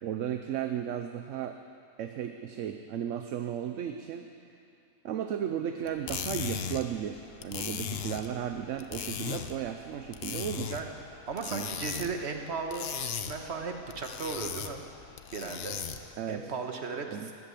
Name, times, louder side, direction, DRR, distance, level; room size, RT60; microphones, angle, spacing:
voice 1, 0.0-1.6 2.0-4.3 5.0-10.8 11.5-11.7 16.2-16.5 17.1-17.3, right 9 dB, 70° right, 7 dB, 1.0 m, -35 dB
sound 1, 5.9-16.2, left 7 dB, 55° left, 0.9 m, -38 dB
voice 2, 11.3-14.8 15.3-15.8 16.3-17.3, right 4 dB, 55° right, 4 dB, 1.5 m, -36 dB
13.5 x 11.5 x 8.4 m, 2.6 s
omnidirectional pair, 1.4 m